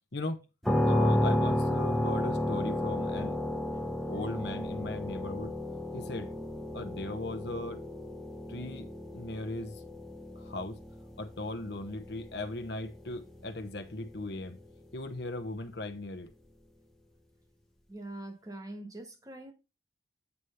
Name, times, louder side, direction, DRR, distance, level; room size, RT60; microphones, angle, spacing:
voice 1, 0.1-0.4 0.8-3.4 4.1-5.5 5.9-6.3 6.7-7.8 8.5-9.8 10.3-10.8 11.2-14.6 14.9-16.3, left 2 dB, 60° left, 0.9 m, -38 dB
sound 1, 0.6-14.4, left 1 dB, ahead, 0.8 m, -32 dB
voice 2, 17.9-19.5, right 1 dB, 20° right, 1.3 m, -43 dB
8.3 x 3.3 x 5.5 m
head